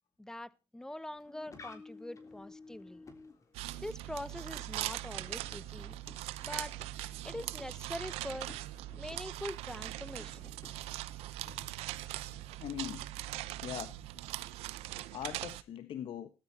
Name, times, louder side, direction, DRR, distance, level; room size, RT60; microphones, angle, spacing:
voice 1, 0.2-3.0 3.8-5.9 6.4-6.7 7.2-8.5 9.0-10.4, left 1 dB, 5° left, 0.9 m, -43 dB
sound 1, 1.1-11.1, left 3 dB, 30° left, 3.5 m, -55 dB
sound 2, 3.5-15.6, right 16 dB, 85° right, 0.9 m, -41 dB
voice 2, 12.6-14.0 15.1-16.3, left 10 dB, 60° left, 1.4 m, -42 dB
18.0 x 13.5 x 2.9 m
cardioid pair, 100°, 10 cm